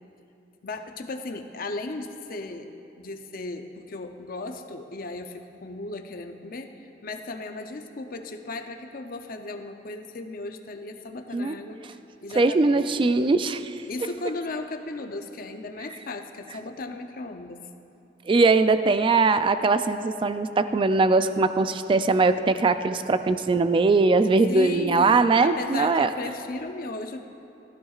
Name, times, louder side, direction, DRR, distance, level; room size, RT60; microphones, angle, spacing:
voice 1, 0.6-2.7 3.0-11.8 12.2-12.9 13.9-17.6 24.5-27.2, left 2 dB, 55° left, 6 dB, 0.6 m, -36 dB
voice 2, 12.4-13.7 18.3-26.1, right 3 dB, 30° right, 11 dB, 0.3 m, -21 dB
14.5 x 13.5 x 2.4 m, 2.8 s
head